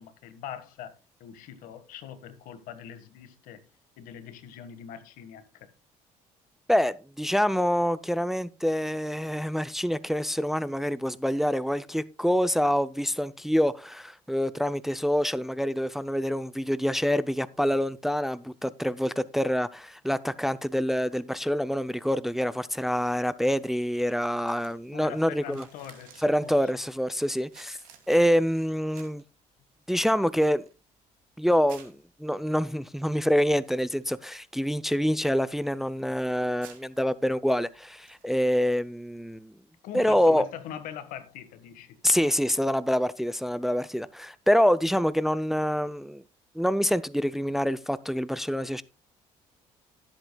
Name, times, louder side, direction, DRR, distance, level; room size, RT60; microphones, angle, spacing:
voice 1, 0.0-3.6 4.0-5.7 24.9-26.7 39.8-42.0, left 9 dB, 80° left, 1.5 m, -42 dB
voice 2, 6.7-25.6 26.2-27.8 28.1-29.2 29.9-30.6 31.4-39.5 39.9-40.5 42.0-46.2 46.6-48.8, equal, ahead, 0.4 m, -26 dB
sound 1, 23.3-38.6, right 9 dB, 85° right, 2.6 m, -59 dB
17.0 x 8.0 x 2.2 m
cardioid pair, 90°, 14 cm